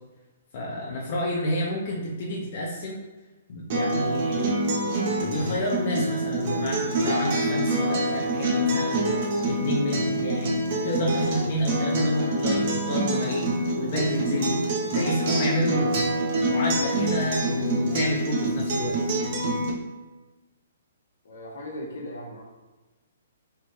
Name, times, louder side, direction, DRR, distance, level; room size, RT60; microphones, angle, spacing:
voice 1, 0.5-3.0 3.5-4.5 5.1-10.5 10.8-13.5 13.7-14.6 14.9-15.9 16.4-19.0, equal, 50° left, -5 dB, 0.7 m, -29 dB
Acoustic guitar, 3.7-19.7, right 1 dB, 50° right, 0.8 m, -26 dB
voice 2, 21.2-22.4, left 1 dB, 75° left, -2 dB, 1.1 m, -38 dB
3.3 x 2.5 x 3.1 m, 1.1 s
hypercardioid pair, 140°, 0 cm